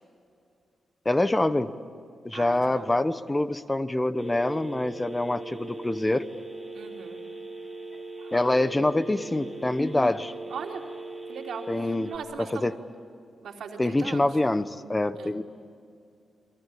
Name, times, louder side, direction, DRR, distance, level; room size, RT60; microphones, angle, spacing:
voice 1, 1.0-1.7 2.2-6.3 8.3-10.3 11.7-12.1 12.5-12.8 13.8-15.4, left 2 dB, 15° left, 12 dB, 1.0 m, -25 dB
voice 2, 2.3-2.9 6.7-7.2 8.2-8.3 10.5-10.8 11.3-12.7 13.4-14.3 15.2-15.3, right 6 dB, 85° right, 1 dB, 3.6 m, -39 dB
Telephone, 4.2-12.2, right 3 dB, 15° right, 1.8 m, -40 dB
29.0 x 23.0 x 8.7 m, 2.5 s
wide cardioid pair, 115°, 0 cm